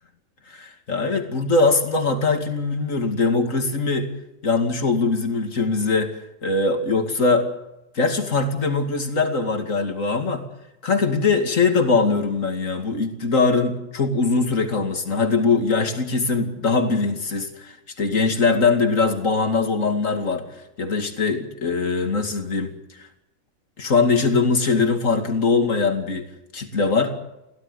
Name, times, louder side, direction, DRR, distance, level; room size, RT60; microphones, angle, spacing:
voice 1, 0.5-4.1 4.4-6.1 6.4-7.5 7.9-10.4 10.8-20.4 20.8-22.7 23.0-23.1 23.8-26.3 26.5-27.1, left 4 dB, 60° left, 5 dB, 2.8 m, -21 dB
23.0 x 16.5 x 8.1 m, 0.93 s
omnidirectional pair, 1.6 m